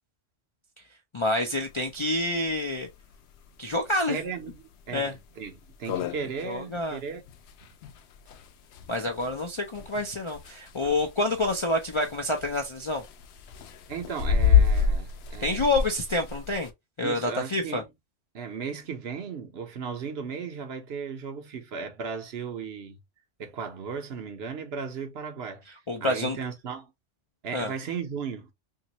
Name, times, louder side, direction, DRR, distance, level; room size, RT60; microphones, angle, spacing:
voice 1, 1.1-2.9 3.6-4.2 4.9-5.1 6.5-7.0 8.9-13.0 15.4-16.7 17.0-17.8 25.9-26.4 27.5-27.7, left 2 dB, 45° left, 0.4 m, -27 dB
sound 1, 1.7-1.8 2.0-2.1 2.5-2.6 3.1-3.4 3.9-4.0 4.5-4.6 4.9-5.0 5.4-5.5 5.7-16.7, left 6 dB, 70° left, 0.8 m, -28 dB
voice 2, 4.0-7.2 10.8-10.9 13.9-15.8 17.0-17.8 18.3-23.0 23.4-25.6 26.0-26.9 27.4-28.5, right 6 dB, 65° right, 0.9 m, -36 dB
3.0 x 2.7 x 2.8 m
omnidirectional pair, 1.2 m